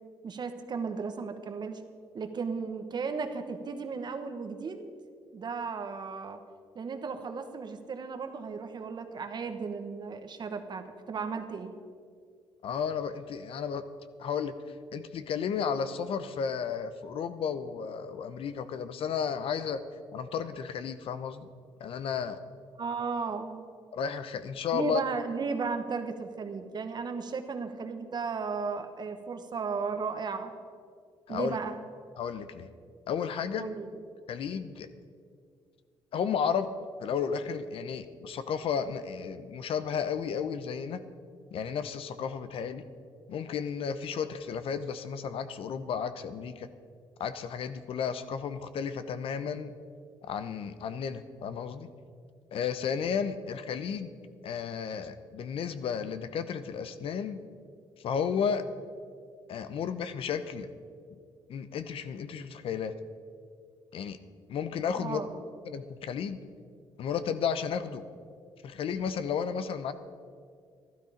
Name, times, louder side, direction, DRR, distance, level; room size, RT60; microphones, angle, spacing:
voice 1, 0.2-1.8 2.1-4.9 5.3-6.4 6.7-11.7 22.8-23.6 24.7-30.5 31.3-31.8 33.5-34.0 64.9-65.4, right 5 dB, 45° right, 7 dB, 1.2 m, -35 dB
voice 2, 12.6-13.8 14.2-14.6 14.9-19.8 20.1-21.5 21.8-22.4 23.9-25.0 31.3-31.6 32.2-32.7 33.1-33.7 34.3-34.9 36.1-36.7 37.0-41.0 41.5-42.8 43.3-46.7 47.2-49.7 50.2-51.9 52.5-54.1 54.4-57.4 58.0-58.6 59.5-60.7 61.5-62.9 63.9-64.2 64.5-65.2 65.7-66.4 67.0-68.0 68.6-69.9, left 7 dB, 65° left, 11 dB, 0.8 m, -33 dB
12.5 x 12.0 x 5.1 m, 2.1 s
cardioid pair, 85°, 10 cm